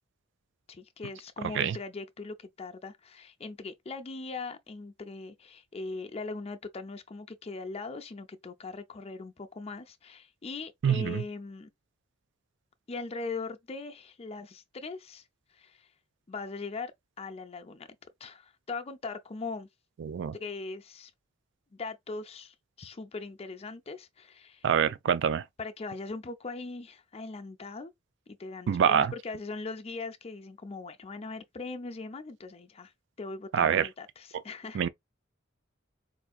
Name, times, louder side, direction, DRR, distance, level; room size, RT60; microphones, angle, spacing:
voice 1, 0.7-11.7 12.9-15.2 15.5-15.9 16.3-16.9 17.2-17.9 18.2-19.7 20.3-21.1 21.7-24.7 25.6-27.9 28.4-32.9 33.2-34.9, left 3 dB, 30° left, 0.5 m, -40 dB
voice 2, 10.8-11.2 20.0-20.4 24.6-25.4 28.7-29.1 33.5-33.9 34.7-34.9, right 8 dB, 60° right, 0.4 m, -25 dB
4.6 x 2.5 x 2.3 m
head